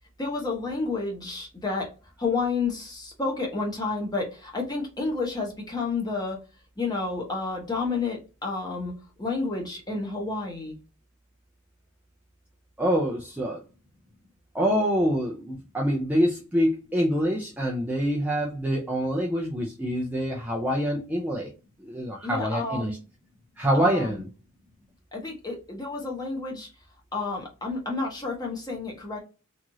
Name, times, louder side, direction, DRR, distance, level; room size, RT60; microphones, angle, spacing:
voice 1, 0.2-1.9 2.2-6.4 6.8-8.9 9.2-10.8 22.2-22.9 23.7-24.2 25.1-26.7 27.1-29.2, left 3 dB, 20° left, 0 dB, 0.8 m, -30 dB
voice 2, 12.8-13.6 14.5-21.5 21.8-23.0 23.6-24.3, equal, 5° right, -2 dB, 0.4 m, -26 dB
3.0 x 2.4 x 2.6 m, 0.32 s
head